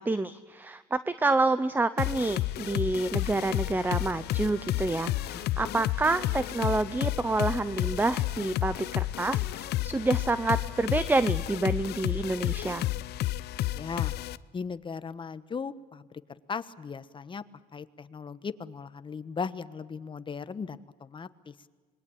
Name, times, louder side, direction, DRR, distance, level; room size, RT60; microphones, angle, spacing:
voice 1, 0.0-12.9, right 2 dB, 10° right, 14 dB, 0.8 m, -28 dB
sound 1, 2.0-14.4, left 15 dB, 75° left, 0.7 m, -31 dB
voice 2, 5.3-5.8 13.7-14.2 14.5-17.4 17.7-21.5, left 5 dB, 30° left, 14 dB, 1.2 m, -38 dB
26.5 x 22.0 x 8.7 m, 1.4 s
cardioid pair, 110°, 17 cm